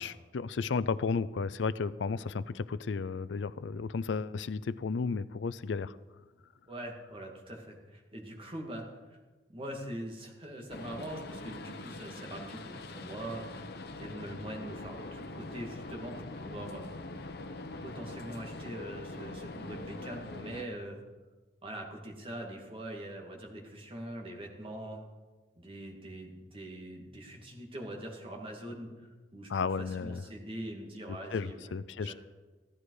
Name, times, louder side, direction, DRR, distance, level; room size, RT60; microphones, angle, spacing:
voice 1, 0.0-6.0 29.5-30.2 31.1-32.1, left 4 dB, 90° left, 17 dB, 0.5 m, -33 dB
voice 2, 6.7-9.2 9.5-13.7 14.0-17.2 17.8-21.0 21.6-25.0 25.6-28.9 29.3-32.1, right 1 dB, 30° right, 1 dB, 2.2 m, -43 dB
sound 1, 10.7-20.6, left 2 dB, 65° left, 1.0 m, -43 dB
15.0 x 12.0 x 4.9 m, 1.2 s
head